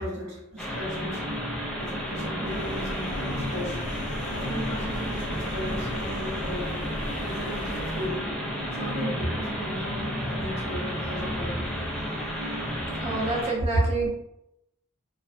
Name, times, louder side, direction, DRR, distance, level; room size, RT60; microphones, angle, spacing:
voice 1, 0.0-1.4 1.8-3.8 4.3-6.7 7.2-8.4 8.7-11.7 13.7-13.9, right 1 dB, 60° right, -7 dB, 0.7 m, -34 dB
sound 1, 0.6-13.5, equal, 5° left, 0.4 m, -34 dB
sound 2, 0.7-13.4, left 1 dB, 30° left, 0.8 m, -36 dB
sound 3, 2.4-8.1, left 1 dB, 85° left, 0.6 m, -37 dB
voice 2, 13.0-14.1, right 3 dB, 30° right, -4 dB, 0.7 m, -28 dB
2.5 x 2.2 x 2.4 m, 0.82 s
head